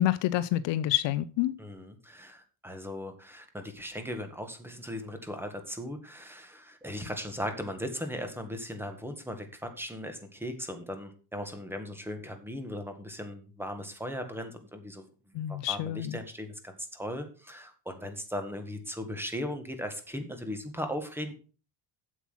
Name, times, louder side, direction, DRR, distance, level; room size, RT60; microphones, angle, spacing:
voice 1, 0.0-1.5 15.3-16.2, left 13 dB, 65° left, 15 dB, 0.7 m, -28 dB
voice 2, 1.6-15.1 15.5-21.3, equal, 5° right, 7 dB, 1.7 m, -38 dB
8.2 x 7.4 x 5.7 m, 0.36 s
cardioid pair, 130°, 48 cm